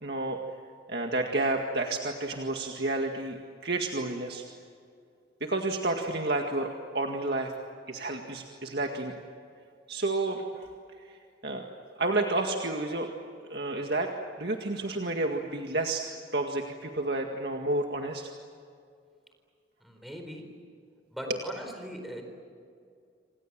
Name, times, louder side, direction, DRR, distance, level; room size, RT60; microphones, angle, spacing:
voice 1, 0.0-0.4 0.9-4.4 5.4-7.5 7.9-9.2 9.9-10.7 11.0-11.2 11.4-13.1 13.5-14.1 14.4-18.3 21.3-21.4, right 2 dB, 60° right, 2 dB, 2.0 m, -30 dB
voice 2, 19.8-20.5 21.1-22.2, equal, ahead, 3 dB, 4.3 m, -40 dB
28.5 x 26.5 x 7.6 m, 2.3 s
head